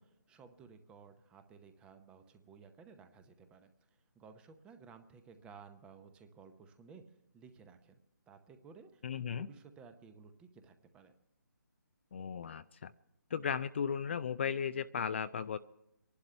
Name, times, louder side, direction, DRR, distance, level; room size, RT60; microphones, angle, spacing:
voice 1, 0.0-8.0 8.3-11.1, right 5 dB, 10° right, 9 dB, 0.8 m, -57 dB
voice 2, 9.0-9.5 12.1-12.9 13.3-15.6, left 7 dB, 35° left, 12 dB, 0.4 m, -36 dB
26.0 x 11.5 x 3.3 m, 0.88 s
figure-of-eight pair, 150°, 10 cm